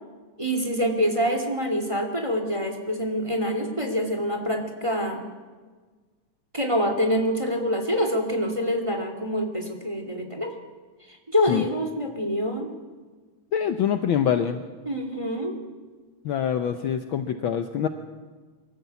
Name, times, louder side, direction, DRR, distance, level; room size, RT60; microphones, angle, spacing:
voice 1, 0.4-5.2 6.5-10.5 11.3-12.7 14.9-15.5, equal, 10° right, 4 dB, 2.1 m, -26 dB
voice 2, 13.5-14.6 16.2-17.9, left 8 dB, 85° left, 7 dB, 1.1 m, -25 dB
24.5 x 13.5 x 8.3 m, 1.4 s
omnidirectional pair, 3.3 m